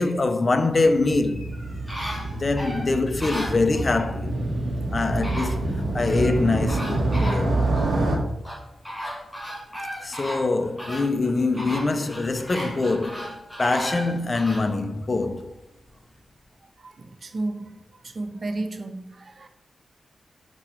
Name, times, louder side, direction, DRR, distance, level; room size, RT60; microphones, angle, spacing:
voice 1, 0.0-1.6 2.3-4.4 4.9-7.6 10.0-15.5, left 3 dB, 30° left, 0.5 m, -24 dB
Motorcycle, 0.7-8.2, right 2 dB, 80° right, 1.4 m, -27 dB
sound 1, 1.2-4.1 4.8-4.9 5.2-6.4 6.7-7.9 8.4-14.7 15.2-15.3, equal, ahead, 1.6 m, -35 dB
voice 2, 16.8-17.8 18.0-19.5, right 2 dB, 45° right, 0.5 m, -32 dB
5.4 x 4.1 x 4.5 m
wide cardioid pair, 125°, 0 cm